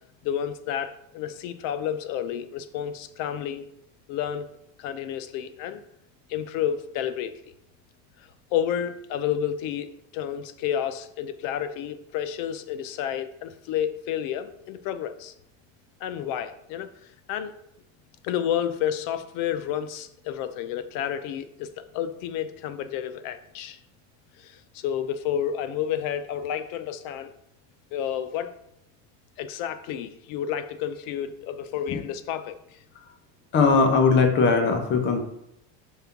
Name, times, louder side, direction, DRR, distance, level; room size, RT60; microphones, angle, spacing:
voice 1, 0.2-3.7 4.1-4.5 4.8-5.8 6.3-7.3 8.5-9.9 10.1-15.3 16.0-16.9 17.3-17.6 18.2-23.8 24.4-27.3 27.9-28.5 29.4-32.8, left 9 dB, 55° left, 11 dB, 0.7 m, -30 dB
voice 2, 33.5-35.2, left 4 dB, 30° left, 4 dB, 1.0 m, -20 dB
5.6 x 3.4 x 5.8 m, 0.78 s
cardioid pair, 150°, 39 cm